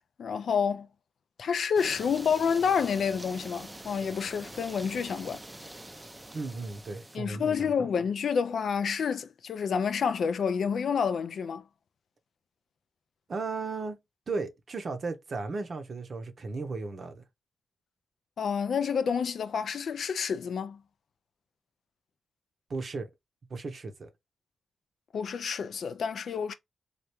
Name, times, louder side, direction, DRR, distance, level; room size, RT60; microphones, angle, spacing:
voice 1, 0.2-0.9 1.4-5.4 7.1-11.6 18.4-20.8 25.1-26.5, left 6 dB, 75° left, 0.3 m, -29 dB
sound 1, 1.7-7.2, right 1 dB, 20° right, 0.4 m, -45 dB
voice 2, 6.3-7.7 13.3-14.0 14.3-17.2 22.7-23.1 23.5-24.1, right 3 dB, 60° right, 0.7 m, -35 dB
3.3 x 2.3 x 2.9 m
supercardioid pair, 45°, 0 cm